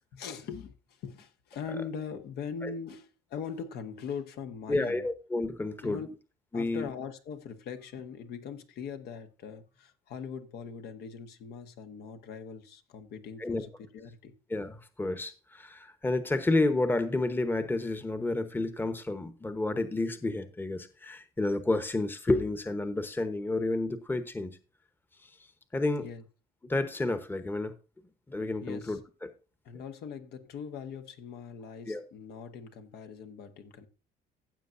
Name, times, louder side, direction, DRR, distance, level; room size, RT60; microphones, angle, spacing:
voice 1, 0.1-5.1 5.8-6.1 6.5-14.4 26.0-26.2 28.6-29.0 29.6-33.9, left 6 dB, 70° left, 1.3 m, -41 dB
voice 2, 4.7-6.0 6.5-6.9 13.4-13.6 14.5-24.6 25.7-26.1 26.6-27.7 28.3-29.3 31.9-32.0, left 2 dB, 10° left, 1.0 m, -30 dB
15.0 x 7.6 x 2.6 m
cardioid pair, 110°, 17 cm